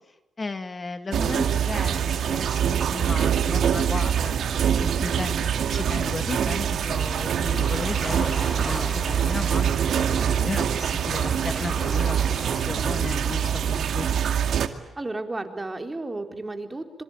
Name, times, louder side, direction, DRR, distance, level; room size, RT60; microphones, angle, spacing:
voice 1, 0.4-4.5 4.8-14.1, left 3 dB, 35° left, 9 dB, 2.2 m, -34 dB
sound 1, 1.1-14.7, right 8 dB, 75° right, 2.2 m, -24 dB
Waves surf, 6.8-12.6, left 2 dB, 15° left, 2.2 m, -39 dB
voice 2, 15.0-17.0, right 2 dB, 20° right, 5 dB, 4.0 m, -33 dB
26.5 x 24.5 x 9.0 m, 0.94 s
cardioid pair, 65°, 0 cm